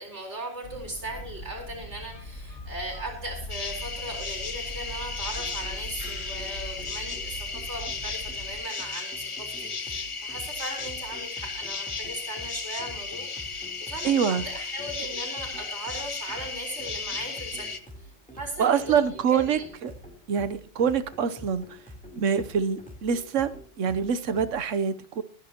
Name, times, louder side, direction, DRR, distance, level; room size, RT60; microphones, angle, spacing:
voice 1, 0.0-13.6 13.9-17.7 18.0-18.1 18.3-19.6, right 1 dB, 65° right, 1 dB, 4.5 m, -38 dB
sound 1, 0.6-8.6, equal, 90° left, 2.5 m, -41 dB
sound 2, 3.5-17.8, left 4 dB, 30° left, 0.7 m, -35 dB
sound 3, 5.4-24.6, equal, 5° left, 3.5 m, -47 dB
voice 2, 14.0-14.4 18.6-19.9 20.3-21.8 22.1-25.2, right 7 dB, 80° right, 13 dB, 1.2 m, -25 dB
24.0 x 10.0 x 2.9 m, 0.41 s
omnidirectional pair, 1.3 m